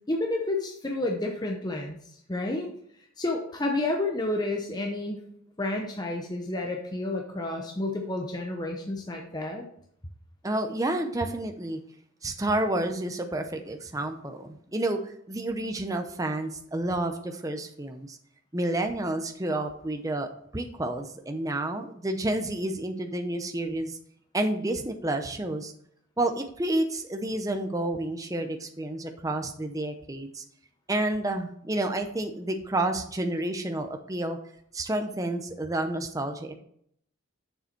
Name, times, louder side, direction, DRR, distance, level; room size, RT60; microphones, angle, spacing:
voice 1, 0.1-2.0 2.3-2.7 3.2-5.2 5.6-9.6, left 2 dB, 20° left, 1 dB, 0.8 m, -30 dB
voice 2, 10.4-11.8 12.2-18.2 18.5-24.0 24.3-25.7 26.2-30.4 30.9-34.4 34.7-36.5, right 1 dB, 15° right, 5 dB, 0.6 m, -30 dB
6.9 x 6.9 x 4.5 m, 0.67 s
head